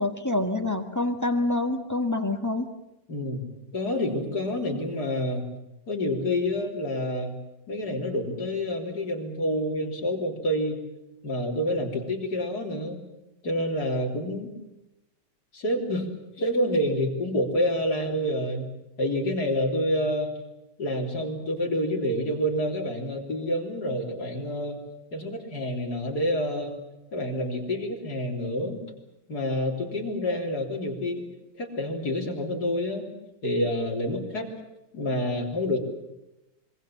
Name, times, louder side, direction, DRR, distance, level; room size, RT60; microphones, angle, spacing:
voice 1, 0.0-2.7, left 2 dB, 10° left, 5 dB, 1.4 m, -26 dB
voice 2, 3.1-3.5 3.7-5.5 5.9-7.3 7.7-10.8 11.2-13.0 13.4-14.5 15.5-16.1 16.4-18.7 19.0-20.3 20.8-24.8 25.1-26.7 27.1-28.8 29.3-31.2 31.6-33.1 33.4-34.5 34.9-35.8, left 1 dB, 50° left, 1 dB, 4.0 m, -28 dB
26.0 x 23.0 x 7.4 m, 0.93 s
omnidirectional pair, 2.1 m